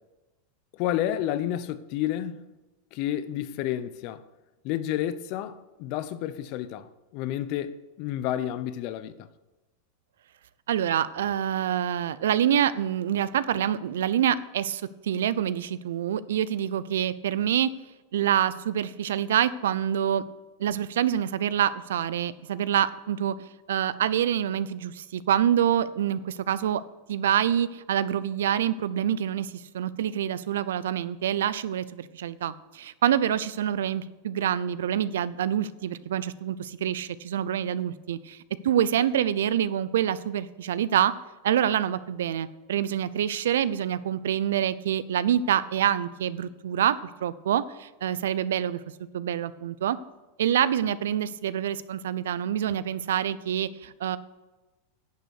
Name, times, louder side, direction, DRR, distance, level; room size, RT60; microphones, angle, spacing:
voice 1, 0.7-2.5 2.9-4.2 4.6-9.3, left 12 dB, 50° left, 0.7 m, -30 dB
voice 2, 10.7-17.7 18.1-20.2 20.6-23.3 23.7-26.8 27.1-38.4 38.6-41.1 41.4-48.8 49.1-50.0 50.4-54.2, right 10 dB, 85° right, 0.5 m, -26 dB
10.5 x 6.7 x 6.6 m
supercardioid pair, 135°, 0 cm